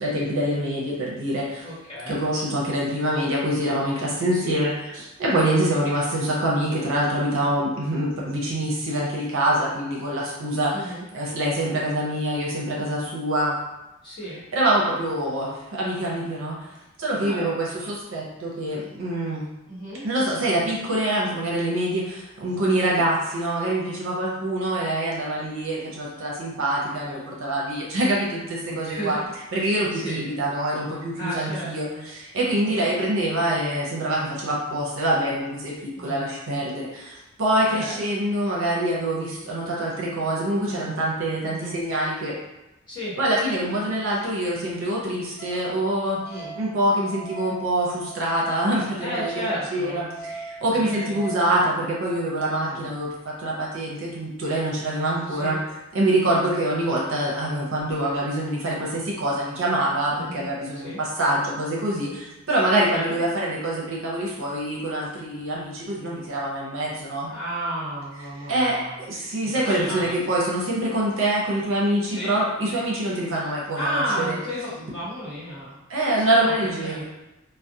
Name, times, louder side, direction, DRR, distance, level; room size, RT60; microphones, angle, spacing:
voice 1, 0.0-1.6 2.1-4.7 5.0-10.7 11.1-13.6 14.5-16.6 17.0-19.4 20.0-29.2 29.5-42.3 43.2-46.2 46.6-49.3 49.7-55.6 55.9-67.3 68.5-74.4 75.9-77.0, right 1 dB, 70° right, -4 dB, 0.6 m, -25 dB
voice 2, 1.6-2.2 4.3-4.6 10.7-11.0 14.0-14.4 17.1-17.6 19.7-20.0 22.9-23.0 28.6-30.3 31.1-32.1 32.6-33.2 35.9-36.3 37.6-38.0 41.5-41.8 42.9-43.2 46.2-46.6 49.0-50.3 50.7-51.3 52.6-52.9 55.3-55.6 56.2-56.4 60.1-61.0 62.7-63.2 67.3-69.0 69.6-70.2 72.1-72.3 73.7-77.0, equal, 25° left, -11 dB, 1.2 m, -33 dB
Wind instrument woodwind instrument, 45.4-51.5, right 3 dB, 50° left, 0.7 m, -41 dB
2.4 x 2.0 x 2.6 m, 0.97 s
head